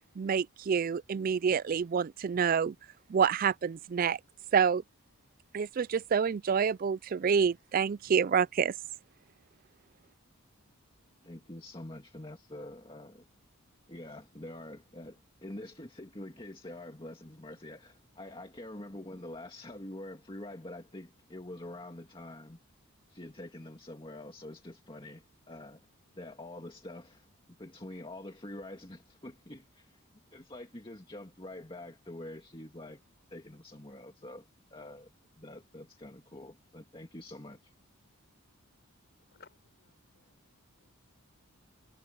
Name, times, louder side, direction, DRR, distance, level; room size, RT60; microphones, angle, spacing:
voice 1, 0.2-2.7 3.1-4.2 4.5-4.8 5.5-8.7, right 6 dB, 40° right, 0.3 m, -27 dB
voice 2, 11.2-13.3 13.9-22.6 23.1-25.9 26.2-27.3 27.6-30.0 30.3-33.0 33.3-35.1 35.4-37.7, left 1 dB, 25° left, 2.0 m, -46 dB
voice 3, 39.2-40.9, left 5 dB, 45° left, 5.4 m, -62 dB
head